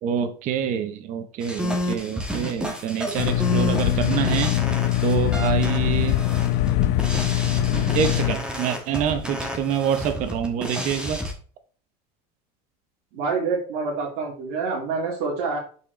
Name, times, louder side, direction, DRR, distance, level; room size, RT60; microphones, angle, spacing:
voice 1, 0.0-4.5 5.0-6.2 7.9-11.2, right 8 dB, 40° right, 0.8 m, -26 dB
sound 1, 1.4-11.3, equal, 5° right, 1.3 m, -30 dB
sound 2, 3.2-8.3, left 13 dB, 55° left, 0.7 m, -22 dB
voice 2, 13.1-15.6, right 4 dB, 65° right, 2.7 m, -27 dB
8.4 x 4.7 x 4.1 m
cardioid pair, 160°, 19 cm